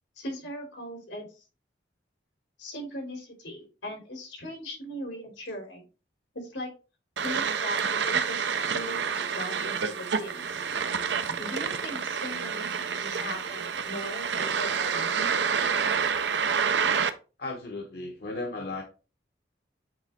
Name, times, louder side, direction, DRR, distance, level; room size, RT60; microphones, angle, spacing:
voice 1, 0.2-1.3 2.6-5.9 6.3-6.7 7.2-10.6 11.3-15.4, equal, 85° left, 1 dB, 3.2 m, -39 dB
sound 1, 7.2-17.1, right 6 dB, 75° right, 0.6 m, -28 dB
sound 2, 8.5-13.5, right 3 dB, 35° right, 0.9 m, -46 dB
voice 2, 17.4-18.8, left 2 dB, 60° left, 1 dB, 1.1 m, -35 dB
8.0 x 3.4 x 4.3 m, 0.32 s
head